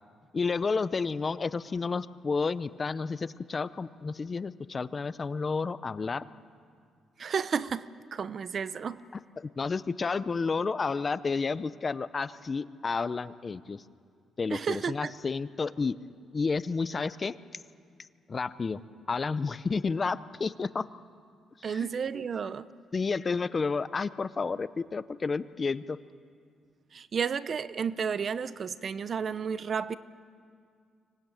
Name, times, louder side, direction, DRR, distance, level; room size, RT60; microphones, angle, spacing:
voice 1, 0.3-6.2 9.4-13.8 14.4-16.0 16.3-17.4 18.3-18.8 19.1-20.9 21.6-21.9 22.9-26.0, left 4 dB, 35° left, 16 dB, 0.6 m, -31 dB
voice 2, 7.2-9.0 14.5-15.1 21.6-22.7 26.9-29.9, right 6 dB, 50° right, 16 dB, 0.7 m, -32 dB
25.0 x 18.5 x 9.2 m, 2.2 s
cardioid pair, 90°, 0 cm